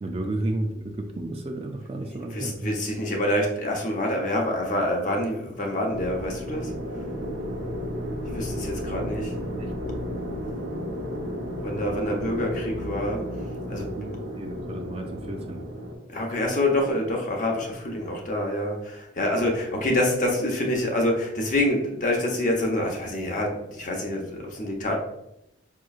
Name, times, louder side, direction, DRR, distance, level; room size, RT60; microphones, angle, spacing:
voice 1, 0.0-2.7 9.6-9.7 11.8-11.9 14.0-15.6, right 1 dB, 30° right, 3 dB, 0.3 m, -32 dB
voice 2, 2.1-6.7 8.3-9.3 11.6-13.2 13.7-13.9 16.1-25.0, left 1 dB, 40° left, 0 dB, 0.8 m, -26 dB
sound 1, 5.9-15.9, equal, 85° right, 1.0 m, -33 dB
5.5 x 3.0 x 2.4 m, 0.84 s
head